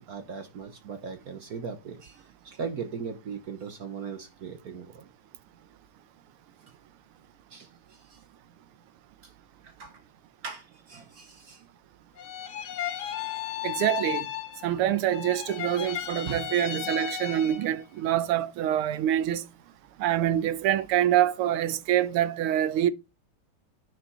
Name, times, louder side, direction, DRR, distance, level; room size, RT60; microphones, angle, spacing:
voice 1, 0.1-5.1 7.5-8.2 9.2-9.3 9.6-10.0 10.4-11.6 16.3-16.4, right 6 dB, 50° right, 1.3 m, -39 dB
sound 1, 12.2-14.8 15.1-17.8, left 11 dB, 70° left, 1.8 m, -35 dB
voice 2, 13.6-14.3 14.6-19.4 20.0-22.9, right 11 dB, 85° right, 1.7 m, -25 dB
9.9 x 5.1 x 5.6 m
omnidirectional pair, 2.4 m